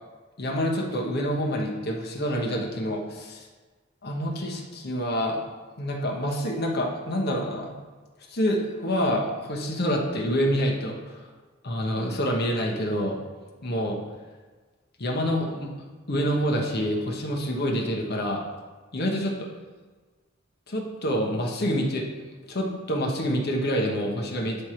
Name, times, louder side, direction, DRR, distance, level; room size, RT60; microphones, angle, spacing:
voice 1, 0.4-3.5 4.0-5.4 5.8-7.7 8.3-11.2 11.6-13.2 13.6-14.0 15.0-15.7 16.1-18.4 18.9-19.5 20.7-22.1 22.5-24.6, equal, 55° left, 0 dB, 1.0 m, -27 dB
7.7 x 3.3 x 4.3 m, 1.4 s
head